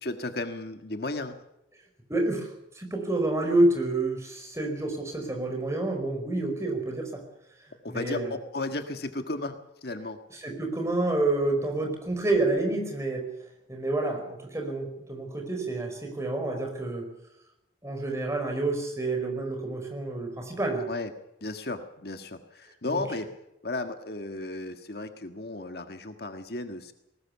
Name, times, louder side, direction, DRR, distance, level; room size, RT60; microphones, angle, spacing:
voice 1, 0.0-1.4 7.8-10.2 20.9-21.1 21.4-23.3 23.6-26.9, left 2 dB, 55° left, 7 dB, 1.7 m, -34 dB
voice 2, 2.1-7.2 7.9-8.3 10.3-13.3 13.7-17.1 17.8-20.9 22.9-23.0, right 2 dB, 15° right, 2 dB, 5.0 m, -28 dB
20.0 x 19.0 x 7.1 m, 0.86 s
head